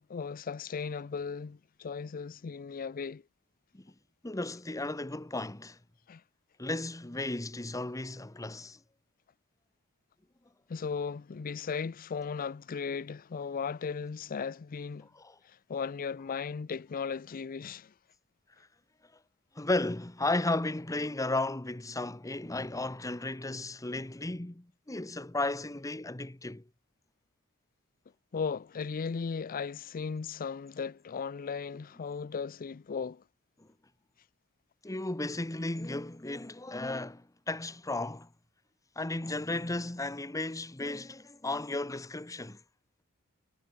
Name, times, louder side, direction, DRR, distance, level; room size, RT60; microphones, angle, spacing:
voice 1, 0.0-3.2 6.1-6.2 10.7-15.1 15.5-17.9 28.3-33.2, left 5 dB, 40° left, 0.4 m, -36 dB
voice 2, 4.2-5.8 6.6-8.8 15.2-15.3 19.5-26.6 33.6-33.7 34.8-38.3 39.0-42.6, left 2 dB, 15° left, 1.0 m, -34 dB
head